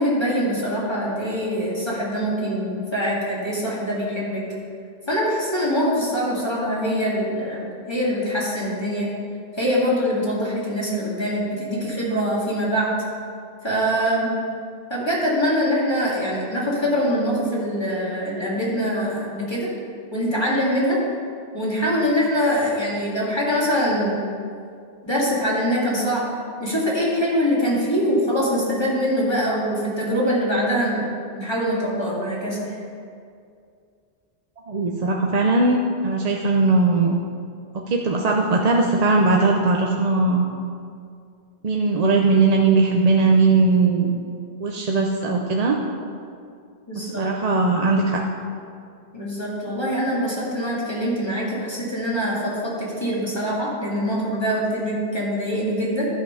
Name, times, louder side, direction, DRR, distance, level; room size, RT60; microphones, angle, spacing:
voice 1, 0.0-4.4 5.1-9.1 9.6-12.9 13.6-14.3 14.9-19.7 20.1-21.0 21.5-24.2 25.0-26.2 26.6-31.1 31.3-32.7 46.9-47.2 49.1-56.1, equal, 25° left, -7 dB, 2.1 m, -23 dB
voice 2, 34.7-37.1 37.7-40.5 41.6-44.1 44.6-45.8 47.0-48.2, right 3 dB, 45° right, 1 dB, 0.7 m, -19 dB
12.0 x 5.9 x 5.5 m, 2.3 s
omnidirectional pair, 1.0 m